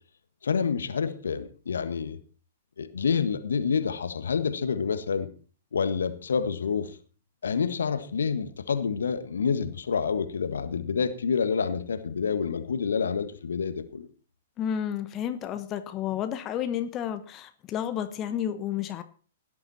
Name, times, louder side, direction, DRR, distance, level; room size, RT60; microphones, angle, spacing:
voice 1, 0.4-2.2 2.8-5.3 5.7-7.0 7.4-14.1, left 6 dB, 70° left, 11 dB, 1.7 m, -28 dB
voice 2, 14.6-19.0, left 9 dB, 30° left, 9 dB, 1.2 m, -31 dB
17.5 x 10.5 x 4.4 m, 0.39 s
figure-of-eight pair, 110°, 0 cm